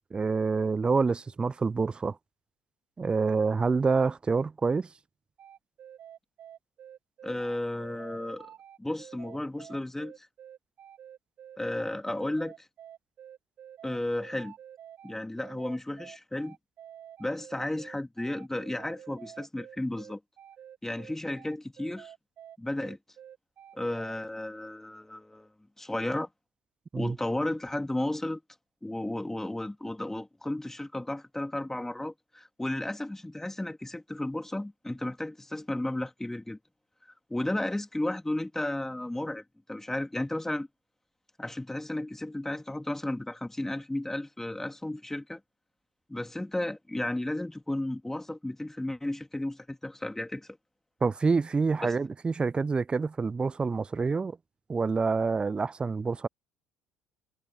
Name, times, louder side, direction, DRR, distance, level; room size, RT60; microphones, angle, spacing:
voice 1, 0.1-2.2 3.0-4.9 26.9-27.2 51.0-54.4 54.7-56.3, right 4 dB, 20° right, 0.3 m, -27 dB
sound 1, 5.4-24.2, right 10 dB, 45° right, 2.8 m, -49 dB
voice 2, 7.2-8.5 8.8-10.3 11.6-12.7 13.8-14.5 15.0-16.6 17.2-20.2 20.8-22.1 22.6-23.0 23.7-25.5 25.8-26.3 27.0-28.4 28.8-36.6 37.3-39.4 39.7-40.7 41.4-45.4 46.1-50.6 51.8-51.9, left 1 dB, 10° left, 3.0 m, -33 dB
figure-of-eight pair, 60°, 5 cm